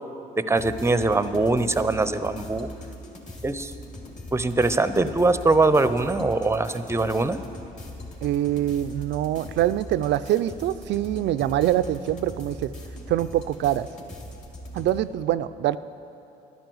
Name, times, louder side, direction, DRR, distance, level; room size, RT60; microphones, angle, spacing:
voice 1, 0.4-2.7 3.4-3.7 4.3-7.4, right 3 dB, 15° right, 12 dB, 0.7 m, -22 dB
sound 1, 0.6-15.0, left 1 dB, 35° left, 3.0 m, -40 dB
voice 2, 8.2-12.7 13.1-13.9 14.7-15.8, right 12 dB, 60° right, 14 dB, 0.4 m, -24 dB
11.5 x 10.5 x 7.8 m, 2.8 s
supercardioid pair, 65°, 20 cm